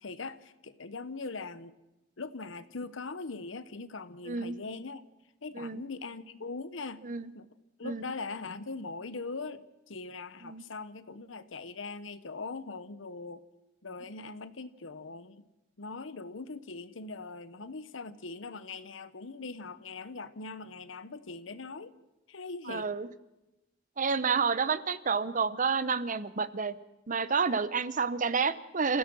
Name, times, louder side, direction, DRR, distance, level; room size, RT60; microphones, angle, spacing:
voice 1, 0.0-1.8 2.2-5.0 5.4-7.0 7.3-7.5 7.8-13.4 13.8-15.5 15.8-21.9 22.3-22.9, left 3 dB, 90° left, 14 dB, 1.0 m, -41 dB
voice 2, 22.7-23.1 24.0-26.8 27.1-29.0, right 5 dB, 45° right, 15 dB, 0.8 m, -29 dB
29.0 x 15.5 x 6.2 m, 0.98 s
head